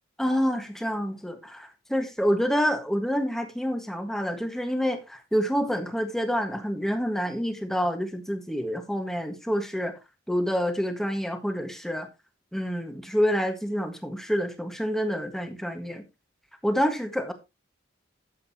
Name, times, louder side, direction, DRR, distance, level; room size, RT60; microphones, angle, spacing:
voice 1, 0.2-9.9 10.3-12.1 12.5-16.0 16.6-17.3, equal, ahead, 1.7 m, -27 dB
12.5 x 8.1 x 2.9 m
head